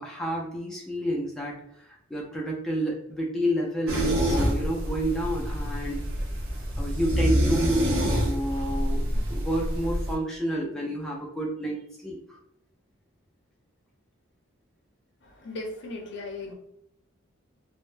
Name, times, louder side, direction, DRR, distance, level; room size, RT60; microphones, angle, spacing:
voice 1, 0.0-1.6 1.9-6.0 6.8-12.2, equal, ahead, -3 dB, 0.3 m, -30 dB
sound 1, 3.9-10.1, equal, 75° right, 0.6 m, -27 dB
voice 2, 15.2-16.5, left 2 dB, 60° left, 1 dB, 0.5 m, -37 dB
2.1 x 2.0 x 3.0 m, 0.75 s
head